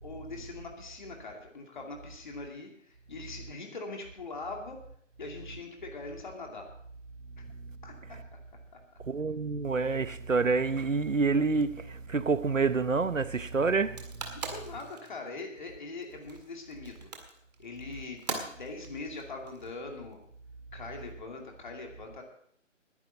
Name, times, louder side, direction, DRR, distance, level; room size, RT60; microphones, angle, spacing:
voice 1, 0.0-4.8 5.2-6.7 7.4-7.5 7.8-8.4 14.3-17.1 17.6-20.2 20.7-22.2, left 3 dB, 40° left, 2.5 m, -42 dB
voice 2, 9.0-14.3, right 4 dB, 85° right, 1.0 m, -28 dB
Keyboard (musical), 13.4-16.6, right 11 dB, 10° left, 4.6 m, -60 dB
sound 1, 13.8-20.1, right 4 dB, 35° right, 1.9 m, -42 dB
20.0 x 10.0 x 4.0 m
figure-of-eight pair, 155°, 38 cm